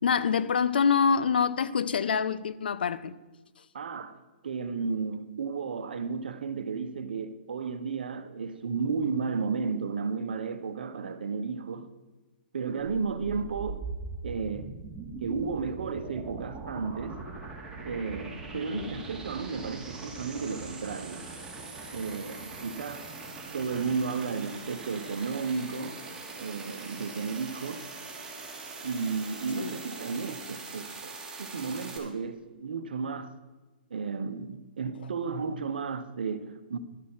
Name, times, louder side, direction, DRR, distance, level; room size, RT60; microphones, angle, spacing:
voice 1, 0.0-3.1 18.7-18.9 29.6-29.7, left 6 dB, 75° left, 0.6 m, -26 dB
voice 2, 3.7-4.2 4.4-11.9 12.5-13.9 14.2-14.7 15.2-17.2 17.8-21.2 21.9-23.0 23.5-26.0 26.4-27.9 28.8-33.3 33.9-36.8, right 5 dB, 75° right, 0.9 m, -33 dB
sound 1, 12.8-32.0, right 3 dB, 10° right, 2.4 m, -41 dB
12.0 x 6.4 x 5.6 m
hypercardioid pair, 130°, 5 cm